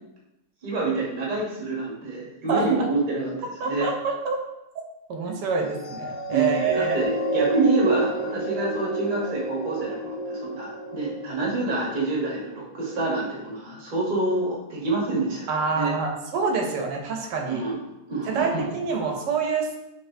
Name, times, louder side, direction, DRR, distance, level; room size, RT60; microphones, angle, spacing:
voice 1, 0.6-3.9 6.3-15.9 17.5-17.8 18.1-18.6, right 3 dB, 35° right, -4 dB, 1.0 m, -27 dB
voice 2, 3.6-4.4 5.1-7.0 15.5-17.6 18.3-19.8, right 4 dB, 90° right, 2 dB, 1.3 m, -26 dB
sound 1, 5.7-12.4 13.0-13.2, right 1 dB, 35° left, 1.0 m, -30 dB
4.1 x 3.4 x 2.6 m, 0.91 s
omnidirectional pair, 1.8 m